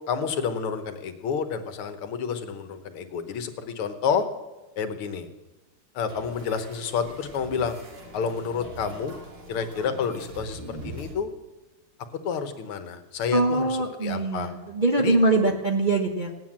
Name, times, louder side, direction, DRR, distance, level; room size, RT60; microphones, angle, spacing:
voice 1, 0.1-4.2 4.8-5.3 6.0-7.8 8.1-9.1 9.5-11.3 12.3-14.5 15.0-15.2, left 6 dB, 85° left, 8 dB, 2.1 m, -29 dB
sound 1, 6.1-11.1, right 1 dB, 55° right, 2.7 m, -42 dB
voice 2, 13.3-16.3, right 2 dB, 35° right, 1 dB, 0.8 m, -23 dB
17.0 x 9.5 x 7.4 m, 1.1 s
omnidirectional pair, 2.3 m